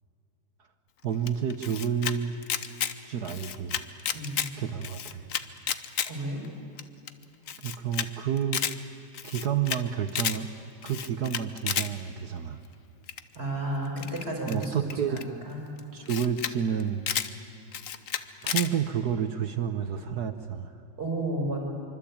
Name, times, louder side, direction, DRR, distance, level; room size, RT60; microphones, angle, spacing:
voice 1, 1.0-2.4 3.0-3.8 4.6-5.3 7.6-8.6 9.2-10.5 10.8-12.6 14.5-15.2 15.9-17.2 18.4-20.8, right 8 dB, 60° right, 9 dB, 1.3 m, -30 dB
Camera, 1.3-2.1 2.4-2.9 3.2-4.5 4.8-6.1 6.4-6.5 6.8-6.9 7.1-7.2 7.5-8.1 8.4-8.7 9.1-9.8 10.1-10.4 10.8-11.9 13.1-13.4 14.0-15.2 15.8-16.5 16.8-17.3 17.7-18.7, left 8 dB, 55° left, 1.0 m, -31 dB
voice 2, 6.1-6.4 13.3-15.6 21.0-21.6, right 1 dB, 30° right, 0 dB, 5.1 m, -32 dB
25.0 x 25.0 x 8.7 m, 2.8 s
omnidirectional pair, 2.2 m